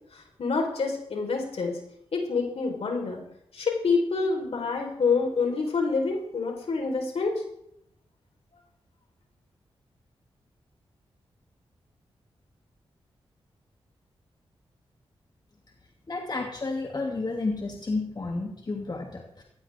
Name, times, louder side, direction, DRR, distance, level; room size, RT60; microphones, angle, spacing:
voice 1, 0.1-1.8 2.1-3.2 3.5-7.4, left 4 dB, 70° left, 2 dB, 4.3 m, -27 dB
voice 2, 16.1-19.4, left 3 dB, 40° left, 0 dB, 2.7 m, -31 dB
15.5 x 15.5 x 3.6 m, 0.72 s
cardioid pair, 55°, 10 cm